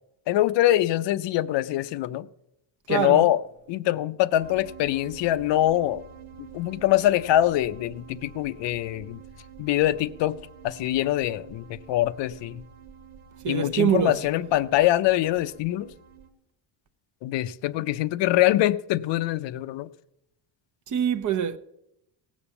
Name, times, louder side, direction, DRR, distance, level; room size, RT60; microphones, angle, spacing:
voice 1, 0.3-2.3 2.9-3.4 3.7-6.0 6.4-9.2 9.6-10.4 10.6-12.6 13.5-15.9 17.2-19.9, left 14 dB, 65° left, 0.6 m, -24 dB
voice 2, 2.9-3.2 13.4-14.2 20.9-21.6, right 9 dB, 40° right, 0.7 m, -24 dB
sound 1, 4.4-16.3, right 7 dB, 85° right, 1.8 m, -47 dB
17.5 x 7.0 x 7.0 m
cardioid pair, 170°, 48 cm